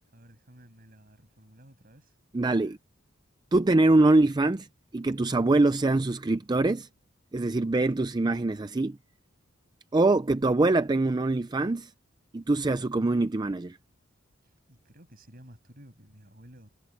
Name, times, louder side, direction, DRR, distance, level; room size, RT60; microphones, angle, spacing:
voice 1, 0.1-2.2 14.4-16.7, equal, 45° right, 7.0 m, -53 dB
voice 2, 2.3-2.8 3.5-4.7 4.9-6.9 7.3-9.0 9.9-11.9 12.3-13.8, right 2 dB, 20° right, 0.4 m, -24 dB
head